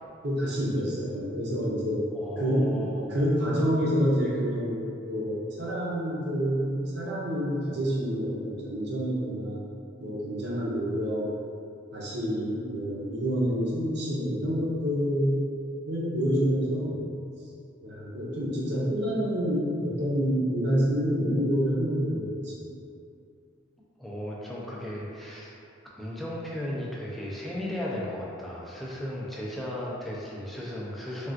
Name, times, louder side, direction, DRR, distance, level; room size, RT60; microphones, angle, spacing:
voice 1, 0.2-2.1 2.4-2.7 3.1-9.6 10.0-11.3 11.9-15.5 15.9-17.0 17.8-22.7, equal, 55° right, -5 dB, 0.6 m, -28 dB
voice 2, 2.1-3.2 24.0-25.5 26.0-31.3, left 1 dB, ahead, -6 dB, 0.3 m, -35 dB
3.3 x 2.3 x 2.5 m, 2.5 s
head